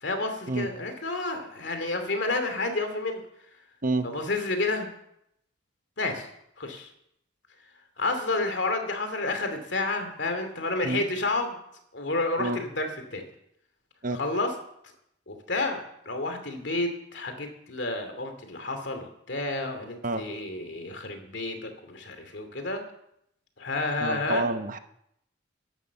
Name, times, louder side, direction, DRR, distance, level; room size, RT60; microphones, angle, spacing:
voice 1, 0.0-3.2 4.0-4.9 6.0-6.3 6.6-6.9 8.0-11.6 11.9-13.2 14.1-14.5 15.3-22.8 23.6-24.5, left 2 dB, 65° left, 6 dB, 2.6 m, -30 dB
voice 2, 24.0-24.8, right 2 dB, 45° right, 9 dB, 0.9 m, -28 dB
12.5 x 11.0 x 7.1 m, 0.76 s
head